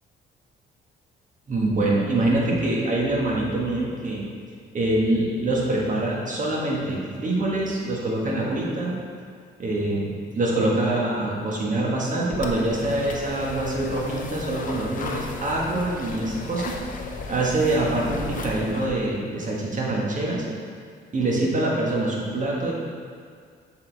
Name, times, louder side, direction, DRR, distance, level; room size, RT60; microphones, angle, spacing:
voice 1, 1.5-4.2 4.7-9.0 9.6-16.7 17.3-20.4 21.1-22.7, right 2 dB, 40° right, -3 dB, 1.5 m, -25 dB
sound 1, 12.3-18.9, left 4 dB, 40° left, 0.7 m, -35 dB
7.1 x 4.0 x 4.0 m, 2.1 s
cardioid pair, 90°, 20 cm